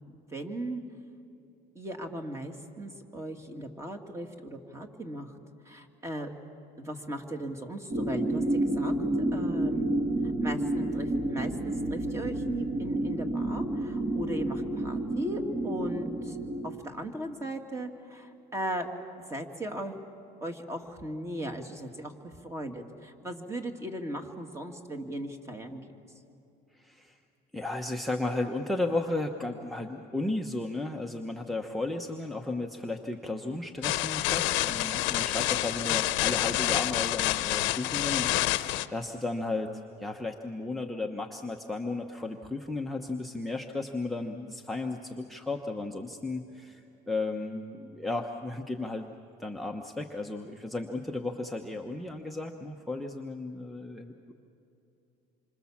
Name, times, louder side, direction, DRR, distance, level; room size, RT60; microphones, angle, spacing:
voice 1, 0.1-0.8 1.8-5.3 5.7-6.3 6.8-8.9 9.3-9.9 10.4-16.4 16.6-18.9 19.3-20.0 20.4-25.8, right 1 dB, 15° right, 5 dB, 2.1 m, -37 dB
sound 1, 7.9-16.7, right 1 dB, 35° right, 3.6 m, -30 dB
voice 2, 26.7-27.2 27.5-49.1 49.4-54.3, left 2 dB, ahead, 4 dB, 1.0 m, -34 dB
sound 2, 33.8-38.9, left 17 dB, 85° left, 0.9 m, -28 dB
27.5 x 25.5 x 7.3 m, 3.0 s
cardioid pair, 145°, 19 cm